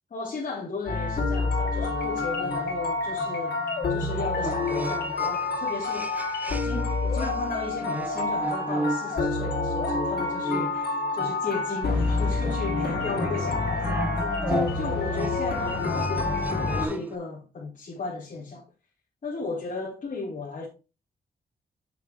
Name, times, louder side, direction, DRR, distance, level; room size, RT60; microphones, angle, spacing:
voice 1, 0.1-3.6 3.9-6.1 6.5-18.6 19.2-20.7, left 3 dB, 50° left, 2.3 m, -35 dB
sound 1, 0.9-16.9, left 3 dB, 85° left, 2.9 m, -28 dB
sound 2, 1.2-6.9 7.2-17.2, right 2 dB, 10° right, 0.5 m, -35 dB
7.2 x 6.5 x 3.4 m
wide cardioid pair, 115°, 17 cm